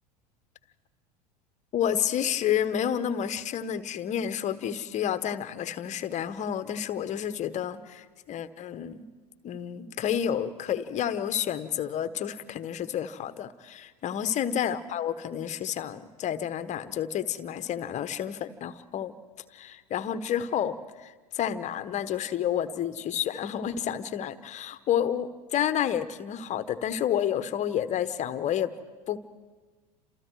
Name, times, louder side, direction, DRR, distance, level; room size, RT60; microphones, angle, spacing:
voice 1, 1.7-9.1 9.4-19.1 19.5-28.7 29.1-29.2, left 9 dB, 35° left, 12 dB, 1.2 m, -30 dB
29.5 x 27.5 x 4.8 m, 1.4 s
figure-of-eight pair, 80°, 20 cm